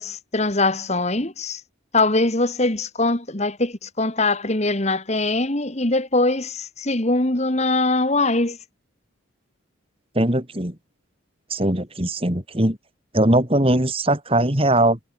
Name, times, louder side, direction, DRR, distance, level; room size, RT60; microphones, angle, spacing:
voice 1, 0.0-1.6 1.9-8.6, left 2 dB, 30° left, 1.8 m, -22 dB
voice 2, 10.1-10.8 11.5-12.8 13.1-15.0, right 1 dB, 25° right, 3.1 m, -20 dB
head